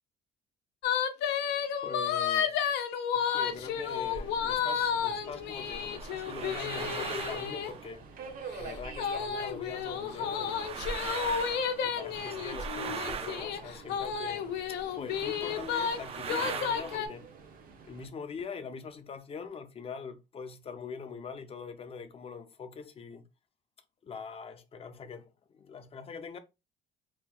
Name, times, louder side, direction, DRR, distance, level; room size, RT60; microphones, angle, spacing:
sound 1, 0.8-7.7 9.0-16.0 16.3-17.1, left 7 dB, 80° left, 0.5 m, -32 dB
voice 1, 1.8-2.6 3.1-8.0 8.6-11.2 11.8-17.3 17.8-23.2 24.0-26.4, left 5 dB, 35° left, 0.5 m, -43 dB
Subway metro underground, 3.5-18.1, right 5 dB, 55° right, 0.7 m, -49 dB
sound 2, 4.0-4.6 5.4-9.3 9.7-14.3 14.8-14.9 15.1-17.0, right 6 dB, 35° right, 0.4 m, -40 dB
2.8 x 2.1 x 3.6 m
cardioid pair, 110°, 17 cm